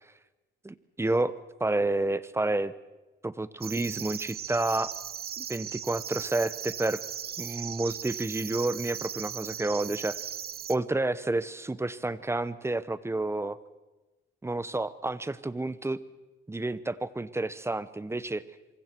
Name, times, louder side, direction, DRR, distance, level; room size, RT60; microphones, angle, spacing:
voice 1, 0.6-1.3 1.6-2.7 3.2-4.9 5.4-7.0 7.4-10.2 10.7-13.6 14.4-16.0 16.5-18.4, right 2 dB, 15° right, 16 dB, 0.9 m, -30 dB
sound 1, 3.6-10.8, right 9 dB, 50° right, 0.7 m, -38 dB
26.5 x 24.0 x 4.6 m, 1.1 s
cardioid pair, 90°, 20 cm